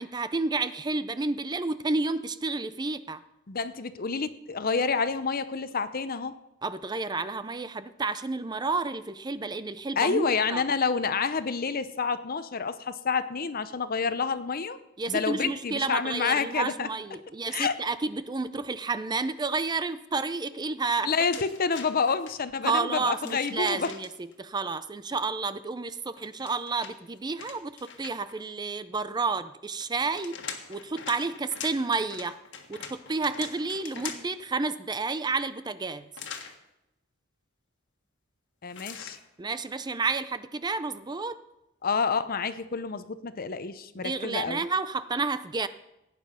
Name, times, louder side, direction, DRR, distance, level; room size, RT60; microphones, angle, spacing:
voice 1, 0.0-3.2 6.6-10.6 15.0-21.4 22.6-30.4 30.7-32.4 32.7-36.1 39.4-41.4 44.0-45.7, right 3 dB, 20° right, 13 dB, 0.5 m, -30 dB
voice 2, 3.5-6.3 10.0-14.8 15.1-16.9 17.5-17.8 21.0-23.9 38.6-39.2 41.8-44.6, left 5 dB, 50° left, 13 dB, 0.7 m, -28 dB
sound 1, 21.3-22.3 23.2-24.3 26.1-28.4 29.8-34.4 36.1-36.6 38.7-39.2, left 7 dB, 65° left, 1.6 m, -42 dB
16.5 x 9.3 x 5.6 m, 0.89 s
head